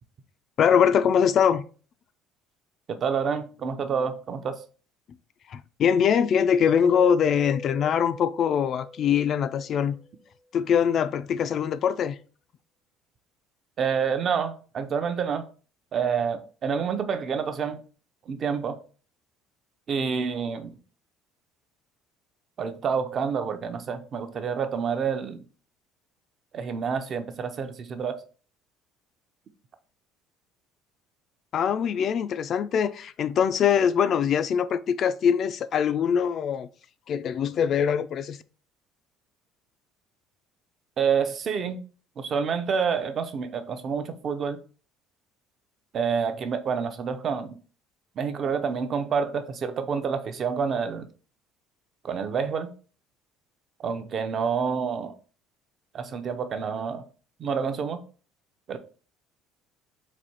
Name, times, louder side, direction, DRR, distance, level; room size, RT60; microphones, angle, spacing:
voice 1, 0.6-1.6 5.5-10.0 10.5-12.2 31.5-36.7 37.1-38.4, left 8 dB, 45° left, 0.3 m, -23 dB
voice 2, 2.9-4.6 13.8-15.4 15.9-17.8 18.3-18.8 19.9-20.8 22.6-25.4 26.5-28.2 41.0-41.8 42.2-44.6 45.9-47.5 48.2-51.1 52.0-52.7 53.8-55.1 55.9-57.0 57.4-58.0 58.7-58.8, right 6 dB, 35° right, 0.6 m, -28 dB
Mallet percussion, 6.7-10.1, left 1 dB, 90° left, 0.8 m, -41 dB
4.2 x 2.7 x 4.4 m
cardioid pair, 140°, 0 cm